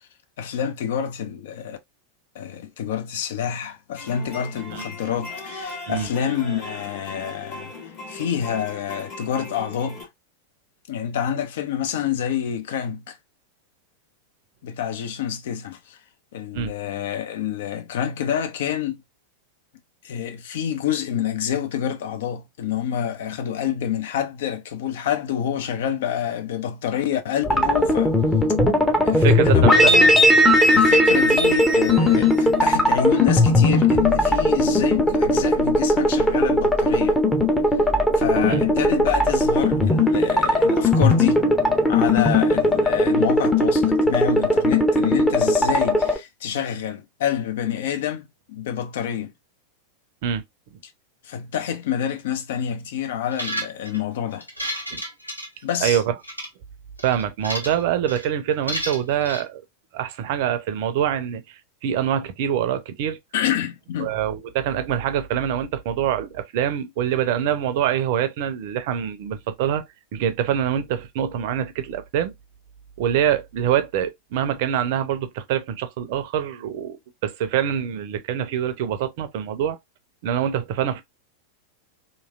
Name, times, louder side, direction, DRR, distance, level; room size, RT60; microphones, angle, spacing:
voice 1, 0.4-1.8 2.3-7.7 8.1-10.1 10.9-13.2 14.6-16.0 16.3-19.0 20.0-28.2 29.1-30.2 30.7-37.2 38.2-41.4 41.9-49.3 51.2-54.5 55.6-56.0 63.3-64.2, left 9 dB, 55° left, 0.5 m, -27 dB
sound 1, 4.0-10.0, left 2 dB, 35° left, 1.5 m, -38 dB
sound 2, 27.4-46.2, left 1 dB, 10° left, 0.7 m, -18 dB
voice 2, 29.1-30.0 32.2-32.3 38.5-38.6 50.2-50.4 54.9-55.0 55.8-56.1 57.0-59.6 59.9-63.2 64.0-69.8 70.1-72.3 73.0-77.0 77.2-79.8 80.2-81.0, right 9 dB, 50° right, 0.5 m, -25 dB
sound 3, 53.3-54.0 54.4-55.9 56.2-56.5 57.0-57.8 58.1-58.3 58.7-59.4, equal, 85° left, 0.7 m, -31 dB
3.0 x 2.6 x 2.4 m
figure-of-eight pair, 90°, 0 cm